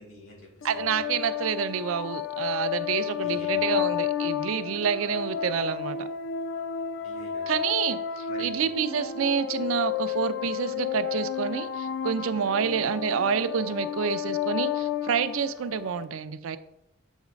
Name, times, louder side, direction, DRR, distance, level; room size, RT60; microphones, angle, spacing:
voice 1, 0.0-1.0 3.2-3.8 7.0-7.7 8.3-8.7 12.6-12.8, left 1 dB, 85° left, -1 dB, 2.0 m, -48 dB
sound 1, 0.6-16.0, left 9 dB, 60° left, 0.4 m, -31 dB
voice 2, 0.6-6.1 7.5-16.6, right 7 dB, 90° right, 12 dB, 0.4 m, -28 dB
7.2 x 3.2 x 5.0 m, 0.80 s
head